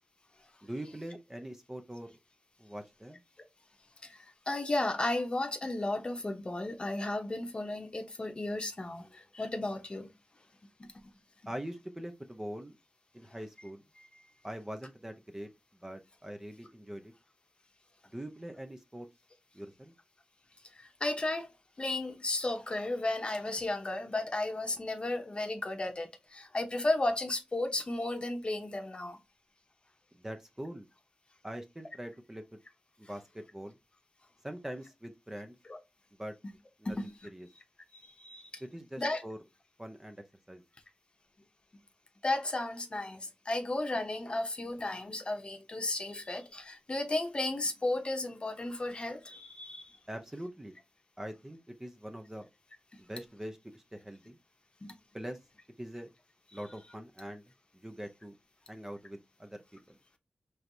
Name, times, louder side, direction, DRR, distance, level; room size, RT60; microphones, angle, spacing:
voice 1, 0.6-2.1 2.6-3.2 11.5-12.8 13.1-13.8 14.4-15.5 15.8-17.1 18.1-19.1 19.5-19.9 30.2-30.9 31.4-32.6 33.0-33.8 34.4-35.6 36.2-36.3 36.8-37.0 37.3-37.5 38.6-39.4 39.8-40.6 50.1-50.7 51.2-52.5 53.0-54.4 55.1-55.4 55.8-56.1 56.5-57.4 57.7-58.4 58.7-60.0, equal, 15° right, 0.6 m, -43 dB
voice 2, 4.0-10.1 10.8-10.9 14.0-14.3 20.7-21.5 21.8-29.2 35.7-35.8 36.8-37.1 37.9-38.6 39.0-39.2 42.2-50.0 54.8-54.9, left 2 dB, 35° left, 0.8 m, -34 dB
4.5 x 3.3 x 2.6 m
wide cardioid pair, 95°, 3 cm